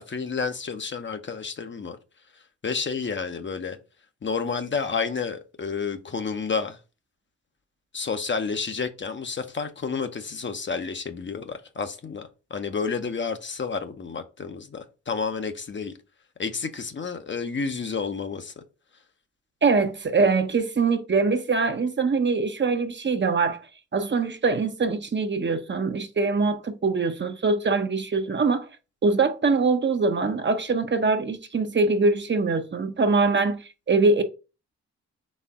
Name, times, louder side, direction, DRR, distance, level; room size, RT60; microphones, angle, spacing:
voice 1, 0.0-2.0 2.3-3.8 4.2-6.8 7.9-15.9 16.4-18.6, left 5 dB, 40° left, 0.7 m, -30 dB
voice 2, 19.6-23.7 23.9-28.7 29.0-34.2, right 4 dB, 35° right, 0.8 m, -23 dB
4.3 x 3.3 x 3.6 m
supercardioid pair, 40°, 31 cm